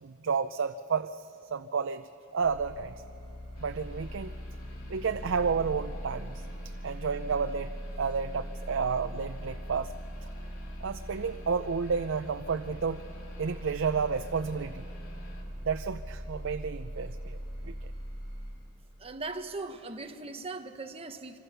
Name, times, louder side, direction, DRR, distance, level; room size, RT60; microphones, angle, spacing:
voice 1, 0.0-2.9 3.6-4.4 4.9-10.0 10.2-10.3 10.8-13.1 13.4-14.9 15.6-17.7, right 5 dB, 65° right, 9 dB, 0.5 m, -31 dB
sound 1, 2.4-18.5, equal, 25° left, 6.0 m, -41 dB
sound 2, 3.5-15.4, right 1 dB, 80° left, 3.3 m, -52 dB
voice 2, 19.0-21.4, right 3 dB, 30° right, 6 dB, 1.2 m, -39 dB
26.0 x 25.5 x 6.8 m, 2.8 s
head